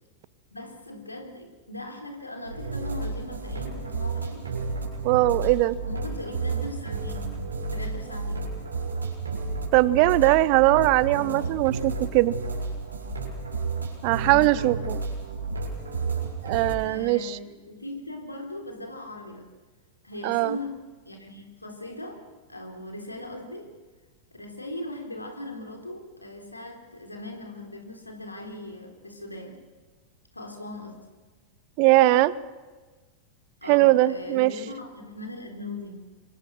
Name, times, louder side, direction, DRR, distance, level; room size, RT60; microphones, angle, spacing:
voice 1, 0.5-4.5 5.8-8.6 11.1-11.5 14.1-15.1 16.8-19.5 20.0-23.7 24.3-29.7 30.3-31.1 33.6-36.2, left 1 dB, 85° left, 3 dB, 3.9 m, -39 dB
sound 1, 2.5-16.7, right 3 dB, 80° right, 6.7 m, -32 dB
voice 2, 5.0-5.8 9.7-12.3 14.0-15.0 16.4-17.4 20.2-20.6 31.8-32.3 33.7-34.5, right 18 dB, 45° right, 19 dB, 0.9 m, -20 dB
27.0 x 25.0 x 6.5 m, 1.3 s
figure-of-eight pair, 90°, 0 cm